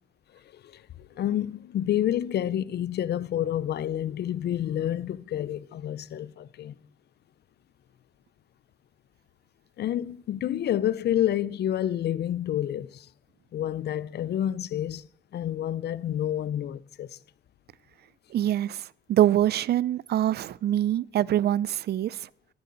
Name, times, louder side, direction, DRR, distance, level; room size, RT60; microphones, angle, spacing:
voice 1, 0.5-6.8 9.8-13.1 13.5-15.1 15.3-17.2, left 11 dB, 55° left, 0.5 m, -29 dB
voice 2, 18.3-22.3, right 12 dB, 55° right, 0.4 m, -24 dB
14.5 x 11.0 x 3.9 m
cardioid pair, 90°, 20 cm